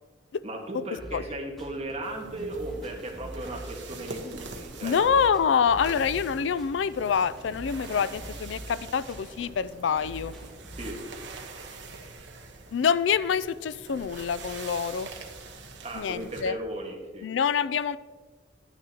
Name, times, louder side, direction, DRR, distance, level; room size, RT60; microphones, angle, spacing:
voice 1, 0.4-5.2 10.7-11.0 15.8-17.3, right 1 dB, 35° right, 0 dB, 1.5 m, -36 dB
sound 1, 1.0-11.0, equal, ahead, 2.3 m, -45 dB
sound 2, 2.0-16.4, right 3 dB, 75° right, 1.2 m, -44 dB
voice 2, 4.8-10.3 12.7-15.1 15.9-16.6 17.2-18.0, left 7 dB, 85° left, 16 dB, 0.4 m, -26 dB
11.5 x 9.8 x 2.9 m, 1.5 s
head